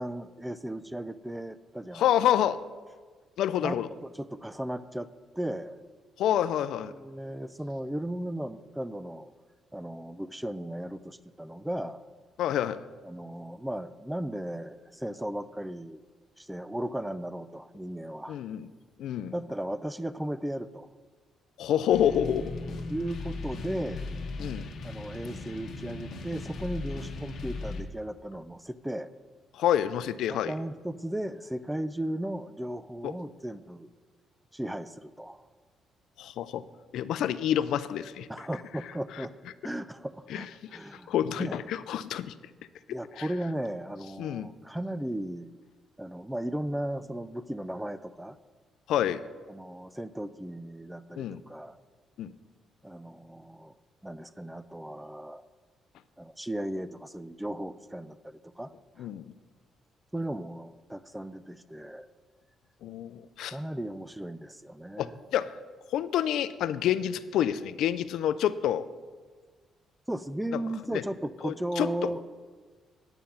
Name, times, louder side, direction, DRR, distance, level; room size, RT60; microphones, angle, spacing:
voice 1, 0.0-2.0 3.6-3.8 4.0-5.1 5.4-5.8 6.9-9.3 9.7-12.0 13.0-16.0 16.4-18.4 19.3-20.9 22.9-24.1 24.8-29.1 30.3-33.9 34.5-35.5 38.3-39.3 39.6-41.1 41.4-41.6 42.9-45.5 46.0-48.4 49.5-51.8 52.8-53.7 54.0-55.4 56.2-58.7 59.0-59.1 60.1-62.1 63.5-65.2 70.1-72.2, right 1 dB, 5° right, 15 dB, 0.5 m, -36 dB
voice 2, 1.9-2.6 3.4-3.9 6.2-6.9 12.4-12.8 18.3-18.7 19.0-19.3 21.6-22.5 24.4-24.7 29.5-30.5 33.0-33.1 36.2-36.6 36.9-38.3 40.3-40.5 40.7-40.8 41.1-42.3 43.2-43.3 44.2-44.5 48.9-49.2 51.2-51.4 52.2-52.3 59.0-59.3 62.8-63.6 65.0-65.5 65.9-68.9 70.9-71.0 71.4-71.9, left 10 dB, 80° left, 14 dB, 0.4 m, -28 dB
sound 1, 21.9-27.8, left 3 dB, 60° left, 1.3 m, -38 dB
9.4 x 8.9 x 5.6 m, 1.4 s
cardioid pair, 90°, 0 cm